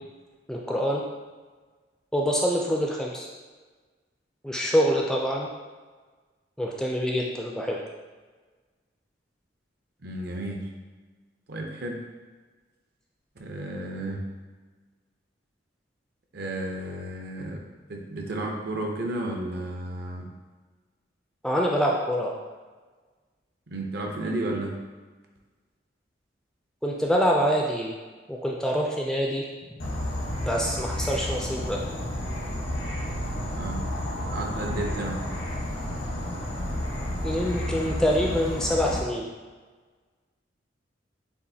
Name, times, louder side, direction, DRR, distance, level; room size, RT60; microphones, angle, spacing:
voice 1, 0.5-1.0 2.1-3.3 4.4-5.5 6.6-7.8 21.4-22.4 26.8-27.9 28.3-29.4 30.4-31.8 37.2-39.3, equal, 5° left, -2 dB, 0.3 m, -25 dB
voice 2, 10.0-10.7 11.5-12.0 13.4-14.2 16.3-17.6 17.9-20.3 23.7-24.8 33.5-33.8 34.3-35.2, right 1 dB, 60° right, 1 dB, 0.7 m, -32 dB
Insect / Frog, 29.8-39.0, left 1 dB, 85° left, 1.2 m, -31 dB
7.0 x 2.5 x 2.7 m, 1.4 s
head